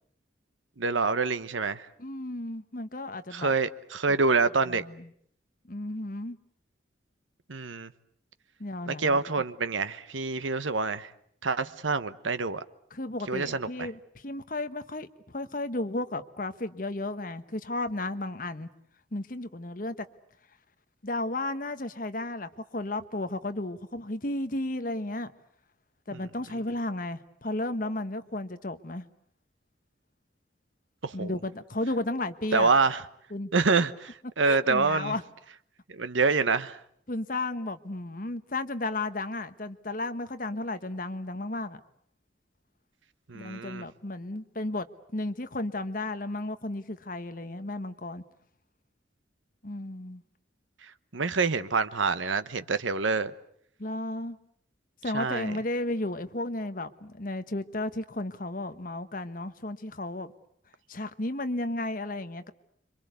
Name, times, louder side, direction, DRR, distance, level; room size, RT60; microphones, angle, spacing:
voice 1, 0.8-1.9 3.3-4.8 7.5-7.9 8.9-11.1 11.4-12.6 13.3-13.9 31.0-31.3 32.5-33.0 33.5-35.1 35.9-36.8 43.3-43.8 51.1-53.3 55.1-55.5, right 4 dB, 90° right, 1.1 m, -26 dB
voice 2, 2.0-3.5 4.1-4.2 4.6-5.1 5.7-6.4 8.6-9.2 12.9-18.7 19.1-20.1 21.0-25.3 26.1-29.1 31.1-32.7 33.3-33.5 34.4-35.2 37.1-41.8 43.3-44.9 45.1-48.2 49.6-50.2 53.8-54.4 55.0-60.3 60.9-62.5, left 2 dB, 45° left, 1.3 m, -33 dB
26.5 x 24.5 x 8.3 m
head